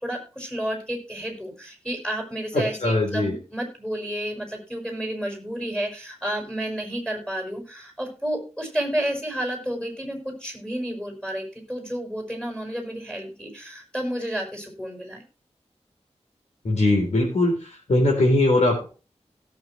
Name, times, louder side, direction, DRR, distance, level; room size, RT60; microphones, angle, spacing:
voice 1, 0.0-15.2, equal, 5° left, 2 dB, 5.8 m, -31 dB
voice 2, 2.5-3.3 16.7-17.5 17.9-18.8, left 2 dB, 80° left, -2 dB, 3.9 m, -20 dB
17.0 x 7.7 x 3.3 m, 0.34 s
wide cardioid pair, 105°, 12 cm